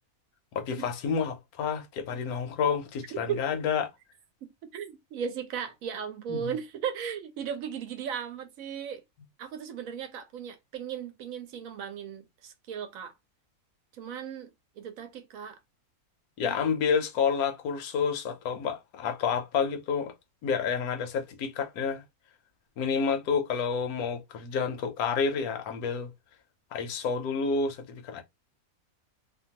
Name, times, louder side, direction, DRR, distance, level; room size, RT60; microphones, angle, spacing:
voice 1, 0.5-3.9 6.3-6.4 16.4-20.1 20.4-22.0 22.8-26.1 26.7-28.2, left 6 dB, 85° left, 1.2 m, -29 dB
voice 2, 4.7-9.0 9.4-13.1 13.9-14.5 14.8-15.6 16.4-16.6, right 8 dB, 75° right, 1.0 m, -36 dB
2.8 x 2.2 x 2.8 m
omnidirectional pair, 1.5 m